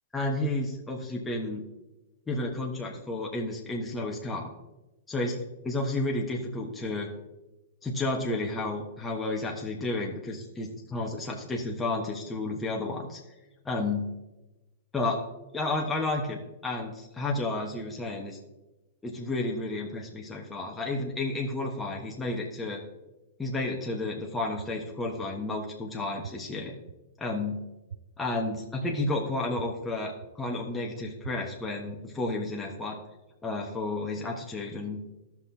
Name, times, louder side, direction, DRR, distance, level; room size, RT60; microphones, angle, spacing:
voice 1, 0.1-1.6 2.3-4.5 5.1-5.4 5.6-7.1 7.8-13.2 13.6-14.1 14.9-15.2 15.5-18.4 19.0-22.8 23.4-26.7 27.2-27.6 28.2-33.0 33.4-35.0, left 2 dB, 10° left, -1 dB, 1.3 m, -31 dB
sound 1, 24.6-24.7 25.2-25.3 26.2-26.3 26.9-27.0 27.9-28.0 28.5-28.6 29.6-29.7 30.2-30.3 31.2-31.3 31.9-32.0, right 7 dB, 80° right, 0.3 m, -40 dB
14.5 x 5.9 x 2.8 m, 1.0 s
hypercardioid pair, 115°, 0 cm